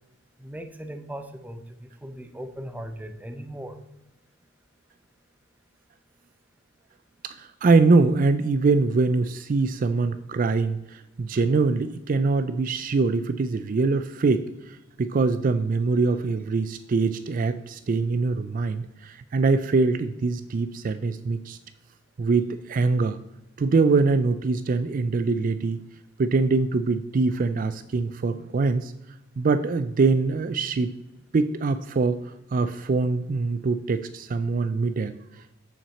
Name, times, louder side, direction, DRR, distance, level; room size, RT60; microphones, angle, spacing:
voice 1, 0.4-3.8, right 1 dB, 10° right, 8 dB, 0.7 m, -38 dB
voice 2, 7.2-21.6 22.2-23.2 23.6-25.8 26.2-28.9 29.4-30.9 31.3-35.5, right 3 dB, 45° right, 12 dB, 0.4 m, -23 dB
7.0 x 5.9 x 7.0 m, 0.92 s
head